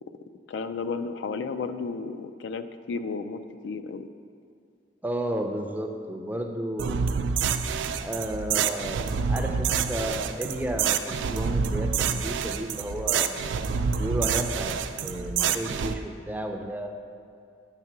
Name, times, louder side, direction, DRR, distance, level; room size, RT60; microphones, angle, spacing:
voice 1, 0.5-4.1, left 4 dB, 75° left, 10 dB, 0.3 m, -33 dB
voice 2, 5.0-7.0 8.0-13.4 13.9-14.7 15.0-16.9, right 1 dB, 10° right, 3 dB, 0.4 m, -32 dB
sound 1, 6.8-15.9, right 6 dB, 85° right, 0.3 m, -27 dB
8.2 x 3.6 x 5.9 m, 2.4 s
head